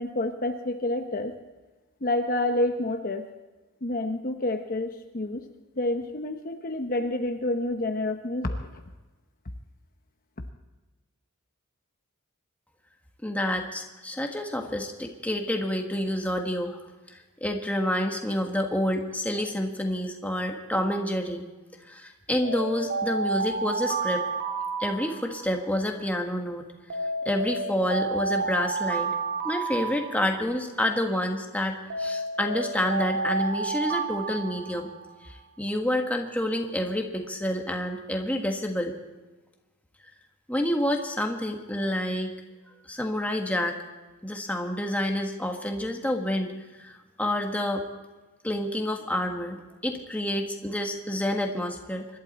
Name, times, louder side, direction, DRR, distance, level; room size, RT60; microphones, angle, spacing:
voice 1, 0.0-1.3 2.0-3.2 3.8-5.5 5.8-8.8, left 2 dB, 40° left, 5 dB, 0.9 m, -28 dB
voice 2, 13.2-16.8 17.1-21.5 21.9-24.3 24.8-26.7 27.2-29.1 29.4-34.9 35.2-39.0 40.5-42.3 42.9-43.8 44.2-46.5 46.8-47.8 48.4-52.2, left 1 dB, 5° left, 2 dB, 1.5 m, -28 dB
Alarm, 22.4-25.7 26.9-30.7 31.9-35.2, right 4 dB, 55° right, 2.2 m, -31 dB
25.5 x 12.0 x 4.2 m, 1.2 s
head